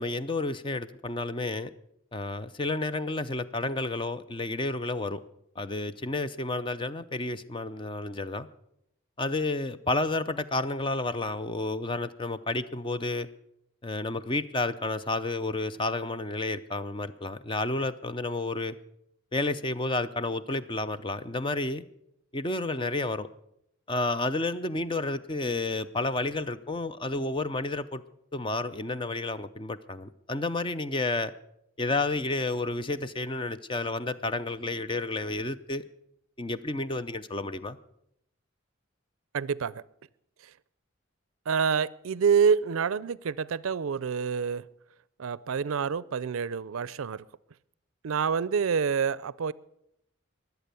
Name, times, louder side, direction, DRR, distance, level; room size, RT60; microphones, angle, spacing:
voice 1, 0.0-1.7 2.1-5.2 5.6-8.5 9.2-13.3 13.8-18.8 19.3-21.8 22.3-23.3 23.9-28.0 28.3-31.3 31.8-35.8 36.4-37.8, left 2 dB, 25° left, 12 dB, 0.5 m, -31 dB
voice 2, 39.3-39.8 41.5-44.6 45.2-47.2 48.0-49.5, right 6 dB, 85° right, 21 dB, 0.5 m, -27 dB
22.0 x 8.1 x 6.9 m, 0.77 s
head